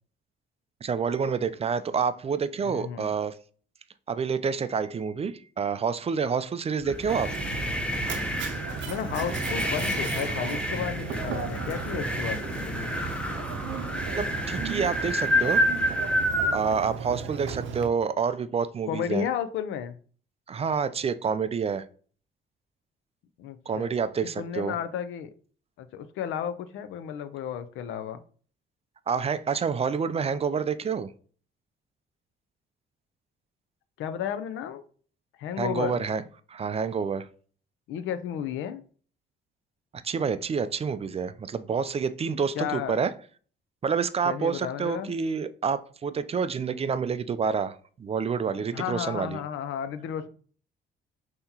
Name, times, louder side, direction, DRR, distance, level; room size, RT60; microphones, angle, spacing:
voice 1, 0.8-3.3 4.1-7.3 14.1-15.6 16.5-19.3 20.5-21.8 23.7-24.7 29.1-31.1 35.6-36.2 36.5-37.3 40.0-43.1 43.8-49.4, right 6 dB, 30° right, 13 dB, 0.4 m, -28 dB
voice 2, 2.6-3.1 8.9-12.9 18.9-20.0 23.4-23.9 24.4-25.3 25.8-28.2 34.0-34.9 35.4-36.0 37.9-38.8 42.5-43.0 44.2-45.1 48.7-50.3, left 9 dB, 85° left, 11 dB, 0.5 m, -33 dB
sound 1, 6.8-16.6, equal, 5° left, 0.8 m, -29 dB
Mechanisms, 7.1-17.9, right 7 dB, 75° right, 0.6 m, -36 dB
5.7 x 2.9 x 2.8 m, 0.43 s
cardioid pair, 90°, 20 cm